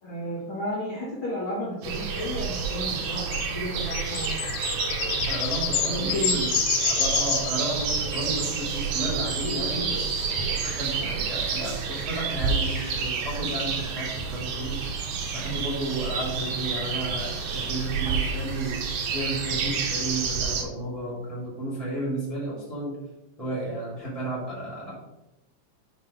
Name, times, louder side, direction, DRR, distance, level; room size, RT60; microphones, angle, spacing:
voice 1, 0.0-4.4 6.0-6.4, equal, 60° left, -6 dB, 1.3 m, -32 dB
sound 1, 1.8-20.6, right 5 dB, 85° right, 1.7 m, -29 dB
sound 2, 3.0-8.1, left 10 dB, 80° left, 2.6 m, -29 dB
voice 2, 5.3-14.9 15.3-23.0 23.4-24.9, right 1 dB, 15° right, -7 dB, 1.5 m, -33 dB
6.0 x 5.7 x 5.1 m, 0.94 s
omnidirectional pair, 5.1 m